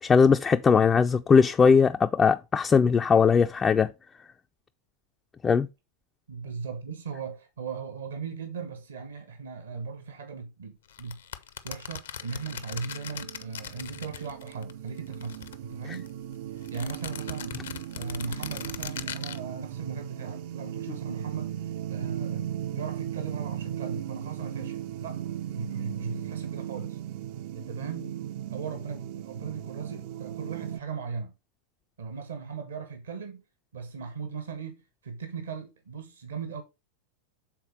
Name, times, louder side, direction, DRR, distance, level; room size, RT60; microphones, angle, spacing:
voice 1, 0.0-3.9 5.4-5.7, left 5 dB, 20° left, 0.3 m, -20 dB
voice 2, 6.3-11.2 11.6-16.1 16.5-17.6 17.9-25.2 25.5-27.0 27.5-28.2 28.5-31.3 32.0-33.4 33.7-36.6, right 5 dB, 65° right, 1.1 m, -38 dB
sound 1, 10.9-14.7 15.0-16.1 16.6-19.4, left 9 dB, 65° left, 0.6 m, -40 dB
sound 2, 12.2-30.8, right 11 dB, 50° right, 0.5 m, -37 dB
7.4 x 4.0 x 5.0 m
figure-of-eight pair, 90°, 0 cm